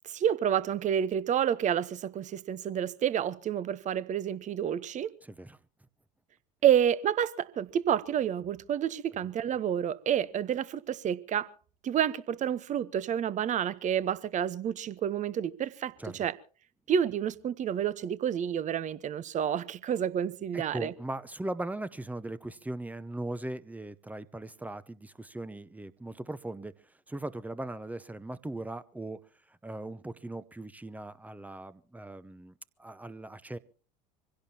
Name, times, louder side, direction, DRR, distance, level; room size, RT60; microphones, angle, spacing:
voice 1, 0.0-5.1 6.6-11.5 11.8-16.3 16.9-20.9, right 9 dB, 35° right, 1.0 m, -29 dB
voice 2, 5.2-5.6 16.0-16.2 20.5-26.7 27.1-29.2 29.6-32.5 32.8-33.6, right 1 dB, 5° right, 0.8 m, -39 dB
25.0 x 16.5 x 2.9 m
hypercardioid pair, 75°, 21 cm